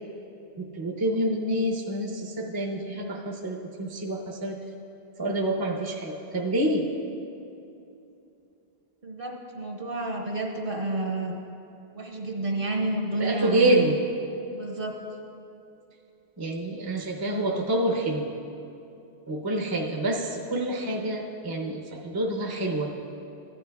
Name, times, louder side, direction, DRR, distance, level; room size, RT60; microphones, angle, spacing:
voice 1, 0.6-4.6 5.2-6.9 13.2-14.0 16.4-18.3 19.3-22.9, right 1 dB, 25° right, -1 dB, 0.7 m, -27 dB
voice 2, 9.0-11.3 11.9-13.9 14.5-15.0, right 2 dB, 60° right, 0 dB, 1.3 m, -30 dB
14.5 x 10.0 x 2.3 m, 2.8 s
omnidirectional pair, 1.0 m